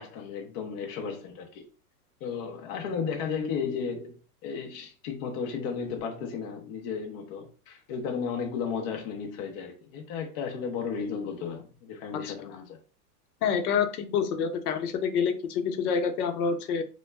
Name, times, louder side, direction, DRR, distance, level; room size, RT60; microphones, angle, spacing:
voice 1, 0.0-1.7 2.2-4.2 4.4-12.8, left 6 dB, 30° left, 0.4 m, -34 dB
voice 2, 13.4-16.8, left 6 dB, 70° left, 0.7 m, -27 dB
2.2 x 2.0 x 3.2 m
hypercardioid pair, 125°, 46 cm